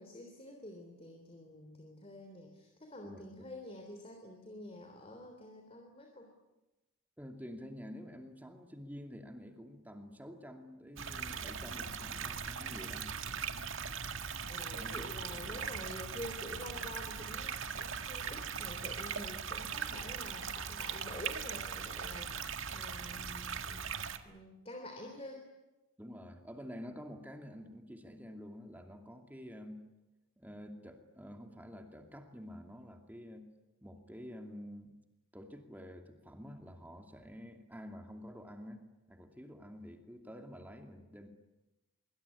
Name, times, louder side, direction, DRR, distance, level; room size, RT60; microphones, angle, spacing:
voice 1, 0.0-6.3 14.5-23.9 24.2-25.4, left 1 dB, 30° left, 4 dB, 3.3 m, -48 dB
voice 2, 3.0-3.4 7.2-13.1 14.7-15.0 15.3-15.7 26.0-29.8 30.4-33.5 33.8-35.0 35.3-38.8 39.1-41.3, equal, 10° right, 4 dB, 2.6 m, -49 dB
sound 1, 11.0-24.2, right 6 dB, 70° right, 1.8 m, -40 dB
25.0 x 24.0 x 9.9 m, 0.99 s
head